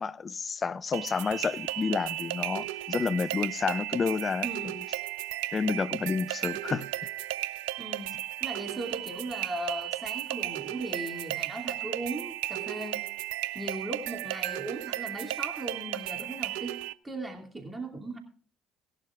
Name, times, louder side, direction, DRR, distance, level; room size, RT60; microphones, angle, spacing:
voice 1, 0.0-4.5 4.7-4.8 5.5-6.9, left 5 dB, 35° left, 0.6 m, -30 dB
sound 1, 0.9-16.9, right 15 dB, 75° right, 0.5 m, -35 dB
voice 2, 4.4-4.8 7.8-8.1 8.4-13.0 13.5-16.8 17.0-18.2, right 2 dB, 15° right, 2.7 m, -38 dB
18.5 x 11.5 x 2.4 m
hypercardioid pair, 55°, 0 cm